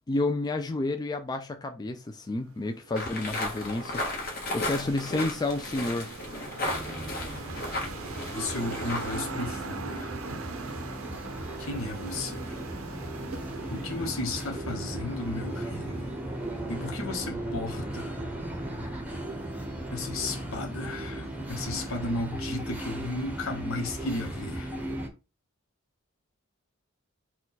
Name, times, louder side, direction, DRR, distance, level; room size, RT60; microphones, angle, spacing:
voice 1, 0.1-4.0 4.5-6.1, left 2 dB, 20° left, 0.3 m, -30 dB
sound 1, 2.5-17.0, right 3 dB, 75° right, 0.6 m, -42 dB
sound 2, 2.9-9.2, left 1 dB, 45° left, 1.3 m, -35 dB
sound 3, 6.6-25.1, right 1 dB, 5° right, 0.8 m, -37 dB
voice 2, 8.3-10.2 11.6-12.6 13.7-16.1 16.7-18.1 19.9-24.7, left 2 dB, 75° left, 1.0 m, -34 dB
4.3 x 2.3 x 4.0 m
head